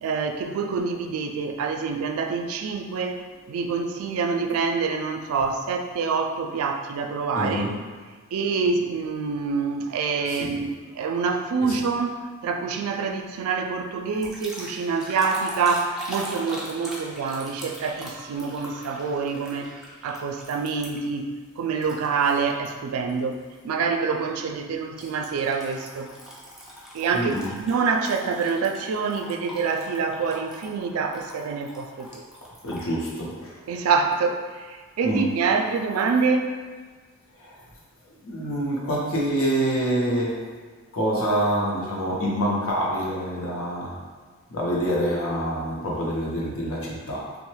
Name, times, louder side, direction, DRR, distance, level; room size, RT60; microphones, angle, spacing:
voice 1, 0.0-7.6 8.3-10.7 11.0-12.2 12.4-19.7 20.0-23.3 23.6-26.1 26.9-32.2 33.7-36.5, right 5 dB, 90° right, 6 dB, 0.3 m, -26 dB
voice 2, 7.4-7.9 10.3-10.6 11.6-11.8 27.1-27.5 32.6-33.6 35.0-35.4 37.4-37.6 38.2-40.6 40.9-44.0 44.5-47.4, equal, 70° left, -4 dB, 0.7 m, -26 dB
sound 1, 14.2-21.2 21.8-22.7 23.1-23.4 25.0-32.9, equal, ahead, 0.4 m, -41 dB
3.0 x 2.1 x 3.1 m, 1.5 s
head